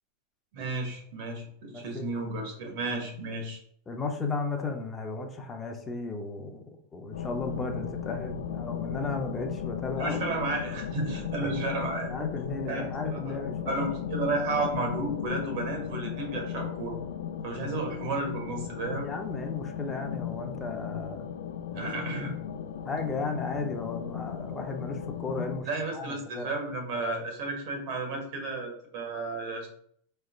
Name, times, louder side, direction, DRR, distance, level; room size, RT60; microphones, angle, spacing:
voice 1, 0.5-3.6 10.0-12.1 12.7-13.4 13.7-17.0 17.4-19.1 21.7-22.4 25.7-29.7, right 2 dB, 55° right, 2 dB, 1.4 m, -33 dB
voice 2, 1.7-2.1 3.9-10.2 11.4-11.5 12.0-13.9 19.0-21.3 21.7-21.9 22.8-26.5, left 3 dB, 15° left, 3 dB, 0.7 m, -35 dB
sound 1, 7.1-25.6, left 8 dB, 85° left, 0.3 m, -36 dB
4.8 x 3.3 x 2.4 m, 0.63 s
supercardioid pair, 145°, 0 cm